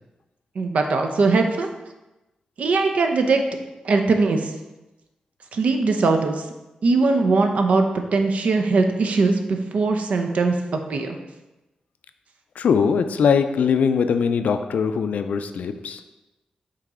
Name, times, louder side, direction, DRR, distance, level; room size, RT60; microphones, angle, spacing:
voice 1, 0.6-1.7 2.6-3.4 3.8-4.5 5.5-6.4 6.8-7.8 8.1-11.2, right 3 dB, 65° right, 5 dB, 0.7 m, -20 dB
voice 2, 12.6-16.0, left 6 dB, 80° left, 9 dB, 0.4 m, -21 dB
5.7 x 4.0 x 4.9 m, 1.0 s
wide cardioid pair, 160°, 3 cm